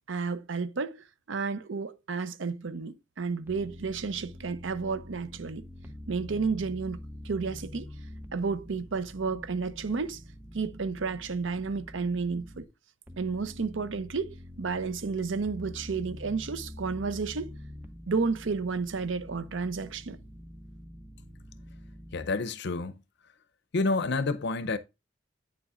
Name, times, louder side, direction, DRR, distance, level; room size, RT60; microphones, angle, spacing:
voice 1, 0.1-1.0 1.3-5.6 6.1-7.0 7.2-7.9 8.3-10.2 10.5-12.7 13.2-17.5 18.1-20.2, right 4 dB, 75° right, 0.6 m, -31 dB
sound 1, 3.5-12.6 13.1-22.2, left 1 dB, 10° right, 0.8 m, -46 dB
voice 2, 22.1-23.0 23.7-24.8, left 3 dB, 60° left, 0.6 m, -28 dB
8.9 x 7.0 x 2.4 m
head